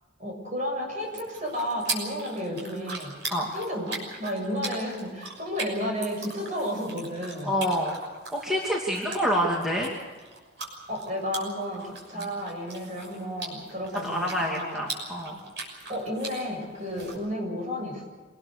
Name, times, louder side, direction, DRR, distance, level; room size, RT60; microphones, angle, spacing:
voice 1, 0.2-3.2 3.5-7.5 9.0-9.3 10.9-14.8 15.9-18.1, equal, 40° right, 1 dB, 7.4 m, -32 dB
sound 1, 1.0-17.1, right 3 dB, 60° right, 6.4 m, -40 dB
voice 2, 7.4-8.0 8.3-9.9 12.1-12.3 14.0-15.4, equal, 5° right, -3 dB, 2.6 m, -27 dB
27.0 x 19.5 x 6.8 m, 1.4 s
head